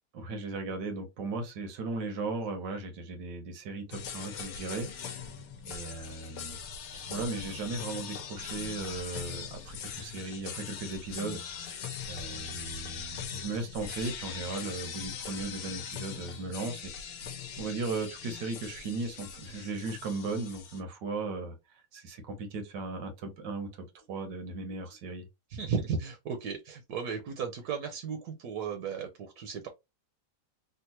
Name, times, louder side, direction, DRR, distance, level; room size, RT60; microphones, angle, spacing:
voice 1, 0.1-5.3 5.6-6.6 7.1-11.4 12.1-16.9 17.6-21.6 21.9-25.3, right 3 dB, 90° right, 1.6 m, -37 dB
sound 1, 3.9-20.8, left 7 dB, 65° left, 1.1 m, -41 dB
voice 2, 25.5-29.7, right 6 dB, 70° right, 1.2 m, -35 dB
3.6 x 2.5 x 2.8 m
omnidirectional pair, 1.8 m